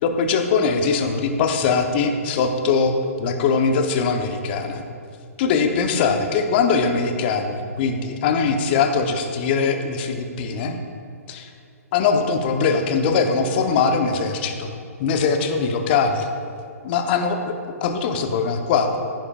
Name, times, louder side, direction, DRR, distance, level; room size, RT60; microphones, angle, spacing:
voice 1, 0.0-4.8 5.4-10.8 11.3-11.5 11.9-14.7 15.0-16.3 16.8-17.6 17.8-18.9, left 5 dB, 40° left, 5 dB, 1.1 m, -21 dB
15.0 x 9.9 x 2.6 m, 2.3 s
figure-of-eight pair, 125°, 9 cm